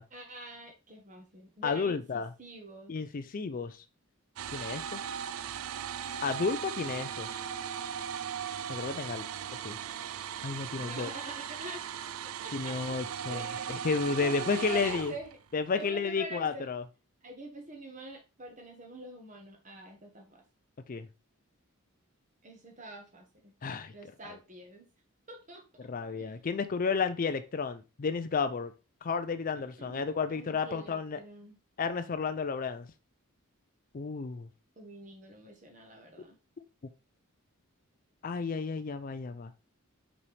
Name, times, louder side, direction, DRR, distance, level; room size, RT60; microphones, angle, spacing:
voice 1, 0.1-2.9 10.8-11.8 12.4-13.0 13.3-13.8 14.2-15.3 15.7-16.7 17.2-20.4 22.4-23.5 23.9-24.9 25.3-25.6 26.2-26.3 29.5-30.0 30.3-31.6 34.8-36.4, right 2 dB, 35° right, 1.6 m, -45 dB
voice 2, 1.6-2.3 2.9-3.8 4.5-5.0 6.2-7.4 8.7-9.2 9.5-9.8 10.4-11.1 12.5-15.1 15.5-16.8 20.9-21.1 23.6-23.9 24.2-24.4 25.8-28.7 29.0-31.2 31.8-32.9 33.9-34.5 38.2-39.5, left 5 dB, 40° left, 0.4 m, -32 dB
sound 1, 4.4-15.6, right 8 dB, 75° right, 0.4 m, -38 dB
5.5 x 5.4 x 3.3 m
head